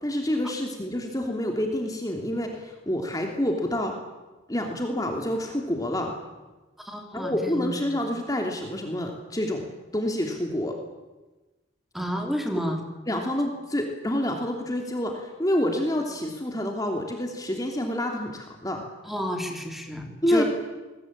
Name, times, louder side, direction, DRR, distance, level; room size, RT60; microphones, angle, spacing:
voice 1, 0.0-4.0 4.5-6.1 7.1-9.7 9.9-10.7 13.1-18.8 20.2-20.4, left 1 dB, 20° left, 2 dB, 3.1 m, -28 dB
voice 2, 6.8-8.0 11.9-12.8 19.0-20.4, equal, ahead, 3 dB, 3.7 m, -31 dB
27.5 x 21.5 x 8.9 m, 1.2 s
head